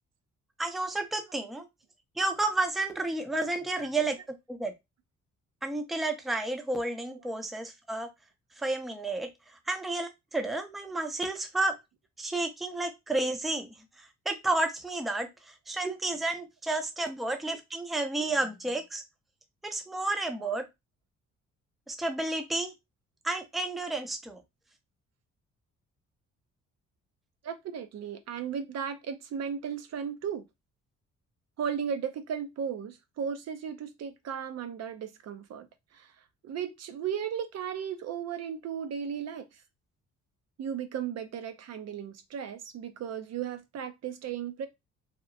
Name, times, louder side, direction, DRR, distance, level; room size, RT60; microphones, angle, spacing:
voice 1, 0.6-1.7 2.2-4.2 4.5-4.7 5.6-8.1 8.6-11.8 12.2-13.7 14.0-19.0 19.6-20.7 21.9-22.7 23.2-24.4, right 2 dB, ahead, 0.4 m, -31 dB
voice 2, 27.4-30.4 31.6-35.7 35.9-36.1 36.4-39.6 40.6-44.7, right 8 dB, 60° right, 0.5 m, -35 dB
2.8 x 2.0 x 2.6 m
cardioid pair, 90°, 30 cm